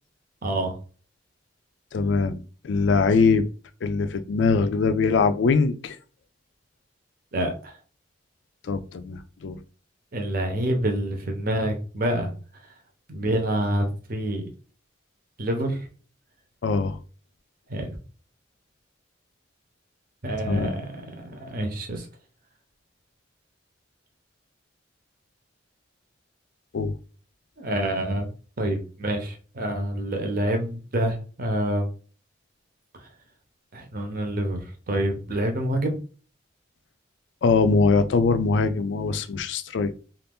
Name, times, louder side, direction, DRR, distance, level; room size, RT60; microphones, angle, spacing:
voice 1, 0.4-0.8 7.3-7.8 10.1-12.3 13.1-14.5 15.4-15.9 17.7-18.0 20.2-22.1 27.6-28.3 28.6-31.9 33.0-33.1 33.7-36.0, right 1 dB, 50° right, 0.8 m, -27 dB
voice 2, 1.9-3.5 3.8-6.0 8.7-9.6 16.6-17.0 20.5-20.7 26.7-27.0 37.4-39.9, left 4 dB, 70° left, 0.4 m, -22 dB
2.6 x 2.5 x 3.5 m
head